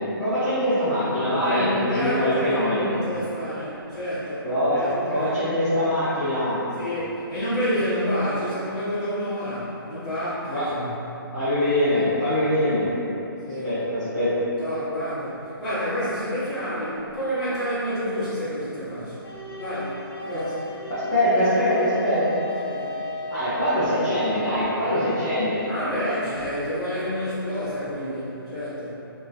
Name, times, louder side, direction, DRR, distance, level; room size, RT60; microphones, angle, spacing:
voice 1, 0.2-2.9 4.4-4.8 5.1-6.7 10.5-10.6 11.3-12.9 13.6-14.3 20.3-20.4 20.9-22.2 23.3-25.6, left 1 dB, 20° left, -16 dB, 0.6 m, -23 dB
voice 2, 1.4-5.3 6.8-10.9 13.4-13.7 14.6-19.2 19.6-20.0 20.2-20.5 22.6-22.9 25.6-28.9, equal, ahead, -20 dB, 1.3 m, -29 dB
sound 1, 19.2-27.1, left 1 dB, 85° left, 0.6 m, -38 dB
Wind instrument woodwind instrument, 21.7-25.3, equal, 65° right, 0.8 m, -34 dB
3.7 x 2.6 x 2.5 m, 3.0 s
hypercardioid pair, 170°, 12 cm